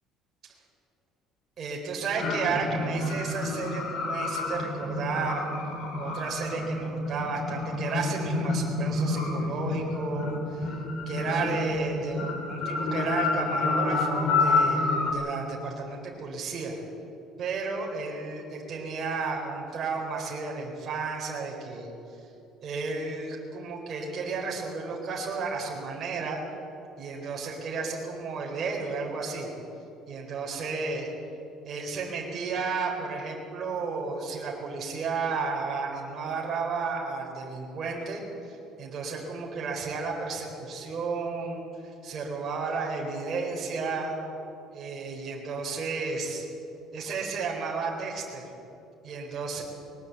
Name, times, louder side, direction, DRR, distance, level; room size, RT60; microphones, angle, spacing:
voice 1, 1.6-5.4 6.0-10.8 11.1-16.8 17.4-21.9 22.6-26.4 27.0-29.5 30.1-31.1 31.6-44.1 44.7-46.5 46.9-48.4 49.0-49.6, right 4 dB, 35° right, -1 dB, 4.1 m, -33 dB
sound 1, 2.2-15.1, left 3 dB, 55° left, 4.0 m, -29 dB
20.5 x 19.0 x 8.2 m, 2.8 s
cardioid pair, 155°, 0 cm